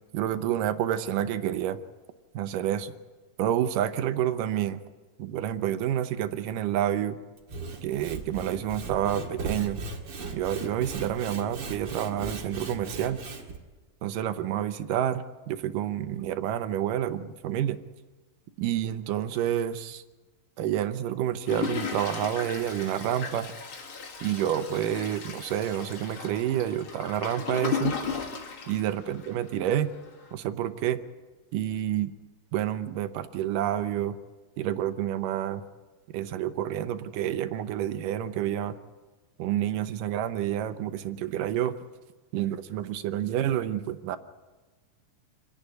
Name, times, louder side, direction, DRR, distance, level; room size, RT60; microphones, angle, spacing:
voice 1, 0.1-1.8 2.3-2.9 3.4-4.8 5.2-7.2 7.8-9.8 10.3-13.2 14.0-17.8 18.6-20.0 20.6-23.5 24.2-28.0 28.7-29.9 30.3-31.0 31.5-32.1 32.5-34.2 34.6-35.6 36.1-38.8 39.4-41.7 42.3-44.2, right 11 dB, 75° right, 11 dB, 2.4 m, -29 dB
Sawing / Wood, 7.4-13.6, right 3 dB, 45° right, 2.8 m, -38 dB
Toilet flush, 21.5-29.5 30.0-30.1 30.3-30.4, left 6 dB, 45° left, 2.2 m, -36 dB
27.5 x 10.5 x 9.4 m, 1.3 s
omnidirectional pair, 4.0 m